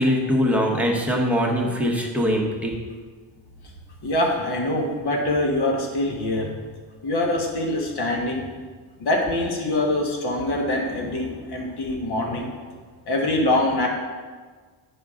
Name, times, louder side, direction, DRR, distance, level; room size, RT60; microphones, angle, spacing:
voice 1, 0.0-2.8, equal, 5° right, -2 dB, 1.0 m, -22 dB
voice 2, 4.0-6.5 7.0-8.5 9.0-12.5 13.1-13.9, left 1 dB, 55° left, 0 dB, 1.5 m, -24 dB
8.8 x 5.1 x 3.7 m, 1.5 s
cardioid pair, 135°, 45 cm